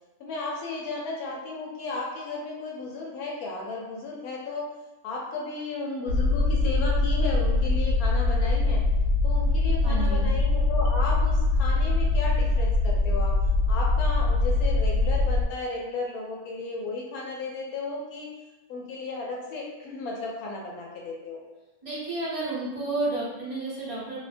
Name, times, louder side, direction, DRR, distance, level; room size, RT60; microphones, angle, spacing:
voice 1, 0.2-4.6 5.0-8.8 9.2-13.3 13.7-18.3 18.7-21.4, left 3 dB, 80° left, -2 dB, 1.0 m, -34 dB
sound 1, 6.1-15.4, left 2 dB, 85° right, 1.1 m, -23 dB
voice 2, 9.8-10.3 21.8-24.2, right 2 dB, 35° right, -8 dB, 0.5 m, -31 dB
2.6 x 2.1 x 2.5 m, 1.1 s
omnidirectional pair, 1.6 m